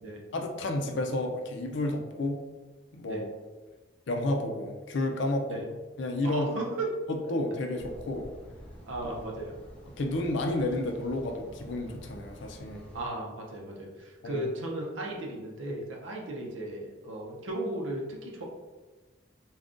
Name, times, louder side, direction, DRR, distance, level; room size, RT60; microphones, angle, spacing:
voice 1, 0.3-2.4 2.9-3.3 4.1-5.6 6.0-6.6 7.1-8.3 10.0-12.8 14.2-14.4, left 1 dB, 70° left, 3 dB, 0.4 m, -31 dB
voice 2, 6.2-6.9 8.9-9.5 12.9-18.4, right 1 dB, 80° right, -1 dB, 0.6 m, -35 dB
sound 1, 7.8-13.1, equal, 5° left, 0.5 m, -48 dB
3.6 x 2.3 x 2.5 m, 1.2 s
head